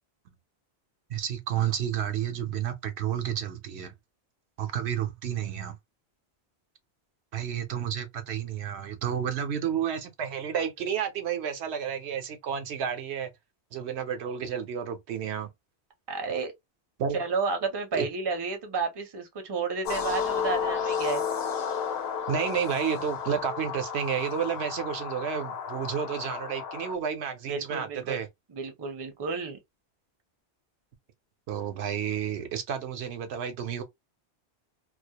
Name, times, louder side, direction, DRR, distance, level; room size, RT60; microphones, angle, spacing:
voice 1, 1.1-3.9 4.6-5.8 7.3-13.3 13.7-15.5 17.0-17.2 17.9-18.1 22.3-28.3 31.5-33.8, right 8 dB, 75° right, 0.9 m, -31 dB
voice 2, 16.1-16.5 17.1-21.2 27.5-28.2 28.5-29.6, right 4 dB, 30° right, 0.5 m, -31 dB
sound 1, 19.8-26.9, left 7 dB, 70° left, 0.8 m, -32 dB
2.3 x 2.0 x 2.8 m
omnidirectional pair, 1.1 m